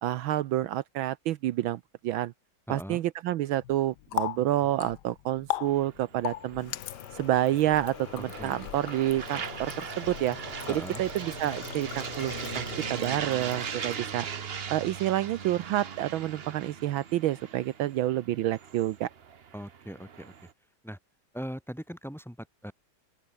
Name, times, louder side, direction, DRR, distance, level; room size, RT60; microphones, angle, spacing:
voice 1, 0.0-2.3 2.7-6.7 7.1-10.4 10.7-14.3 14.7-19.1, right 13 dB, 75° right, 1.5 m, -29 dB
voice 2, 2.7-3.0 8.4-8.7 10.7-11.0 19.5-20.3 20.8-21.0 21.3-22.7, equal, ahead, 4.4 m, -40 dB
Water tap faucet, 3.6-14.4, left 14 dB, 65° left, 1.1 m, -39 dB
sound 1, 5.7-20.5, right 7 dB, 45° right, 0.8 m, -40 dB
open air
omnidirectional pair, 2.3 m